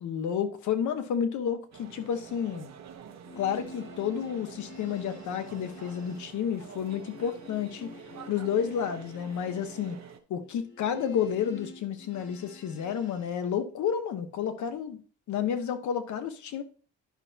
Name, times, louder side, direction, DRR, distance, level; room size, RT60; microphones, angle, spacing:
voice 1, 0.0-2.7 3.4-7.9 8.3-10.0 10.3-15.0 15.3-16.6, left 8 dB, 75° left, 1.1 m, -31 dB
sound 1, 1.7-10.2, right 8 dB, 60° right, 1.0 m, -47 dB
sound 2, 3.1-13.4, left 3 dB, 40° left, 2.5 m, -49 dB
10.5 x 5.6 x 2.7 m
cardioid pair, 90°, 30 cm